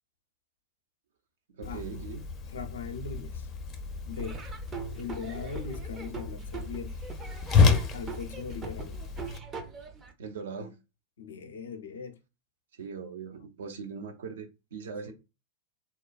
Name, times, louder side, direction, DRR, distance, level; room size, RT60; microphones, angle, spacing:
Whoosh swoosh swish, 1.6-9.4, left 5 dB, 25° left, 0.6 m, -30 dB
voice 1, 1.6-2.2 10.2-10.7 12.8-15.1, right 5 dB, 60° right, 0.7 m, -40 dB
voice 2, 2.5-3.5 4.1-4.4 5.0-7.0 7.5-9.0 11.2-12.1 15.0-15.1, left 5 dB, 65° left, 0.6 m, -40 dB
Laughter / Drum, 4.1-10.1, right 5 dB, 25° right, 0.6 m, -42 dB
3.7 x 2.2 x 2.4 m
figure-of-eight pair, 90°, 0 cm